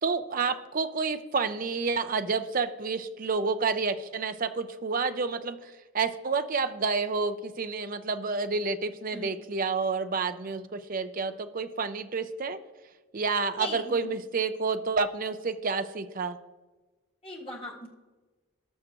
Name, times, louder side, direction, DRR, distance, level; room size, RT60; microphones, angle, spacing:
voice 1, 0.0-12.6 13.1-16.4, right 4 dB, 40° right, 10 dB, 0.5 m, -29 dB
voice 2, 13.6-14.1 17.2-17.9, left 1 dB, 25° left, -2 dB, 1.7 m, -39 dB
18.5 x 6.4 x 3.0 m, 1.2 s
head